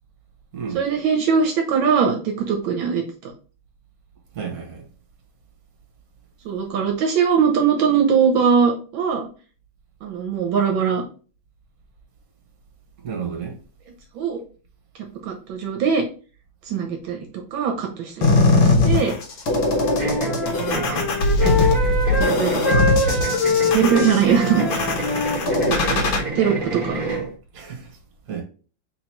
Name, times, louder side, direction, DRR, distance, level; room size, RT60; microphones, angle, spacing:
voice 1, 0.7-3.3 6.4-9.3 10.0-11.0 14.1-14.4 15.2-16.0 16.7-17.2 17.5-19.1 20.5-21.0 21.4-21.6 22.2-22.8 23.7-24.6 25.2-25.3 25.7-26.0 26.3-27.0, right 6 dB, 80° right, 1.5 m, -21 dB
voice 2, 4.3-4.9 13.0-13.6 27.5-28.0 28.2-28.4, right 6 dB, 50° right, 1.6 m, -31 dB
sound 1, 18.2-26.2, left 2 dB, 80° left, 1.8 m, -21 dB
Wind instrument woodwind instrument, 19.5-22.4 22.6-25.9, left 3 dB, 35° left, 1.4 m, -25 dB
sound 2, 20.0-27.3, right 2 dB, 30° right, 1.7 m, -30 dB
4.0 x 2.9 x 4.3 m
omnidirectional pair, 2.2 m